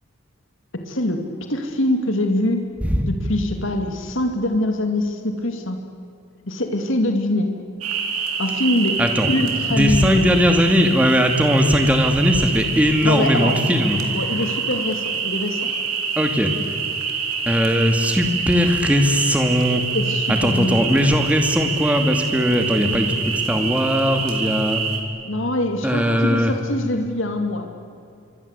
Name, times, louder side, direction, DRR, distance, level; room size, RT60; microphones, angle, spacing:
voice 1, 0.9-1.2 1.5-2.6 3.1-5.8 6.5-7.5 8.4-9.0 9.3-10.2 13.0-15.7 19.9-21.0 25.2-27.7, left 1 dB, 55° left, 4 dB, 2.5 m, -23 dB
sound 1, 7.8-25.0, right 6 dB, 80° right, 3.8 m, -26 dB
voice 2, 9.7-14.0 16.2-16.5 17.5-19.8 20.3-24.8 25.8-26.5, equal, 5° right, 5 dB, 2.4 m, -19 dB
27.0 x 23.5 x 8.3 m, 2.5 s
head